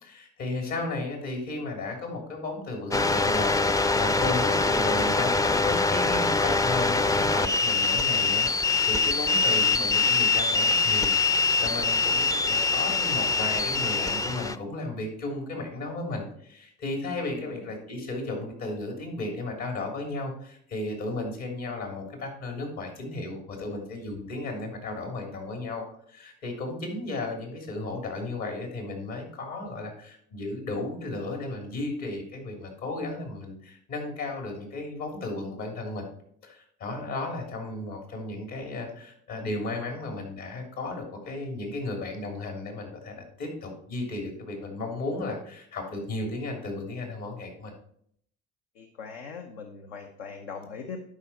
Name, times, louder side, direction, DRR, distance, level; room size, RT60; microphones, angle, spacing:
voice 1, 0.0-36.0 36.4-47.7, left 2 dB, 65° left, 3 dB, 3.2 m, -34 dB
sound 1, 2.9-14.6, left 4 dB, 10° left, 0.4 m, -24 dB
voice 2, 17.3-17.8 48.7-51.0, left 5 dB, 85° left, 4 dB, 0.9 m, -41 dB
11.5 x 5.0 x 4.3 m, 0.66 s
hypercardioid pair, 65°, 30 cm